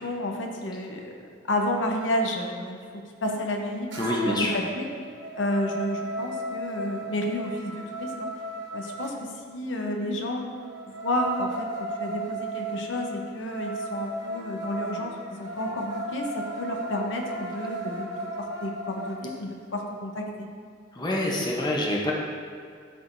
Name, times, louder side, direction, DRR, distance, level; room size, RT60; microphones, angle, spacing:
voice 1, 0.0-2.8 3.2-4.9 5.4-8.3 8.7-10.5 10.9-20.5, left 1 dB, 75° left, 2 dB, 0.8 m, -31 dB
sound 1, 3.9-4.5 4.9-9.1 10.6-19.2, right 1 dB, 75° right, 1.1 m, -35 dB
voice 2, 4.0-4.6 20.9-22.1, left 1 dB, 20° left, -2 dB, 0.7 m, -26 dB
12.0 x 4.5 x 2.6 m, 2.2 s
head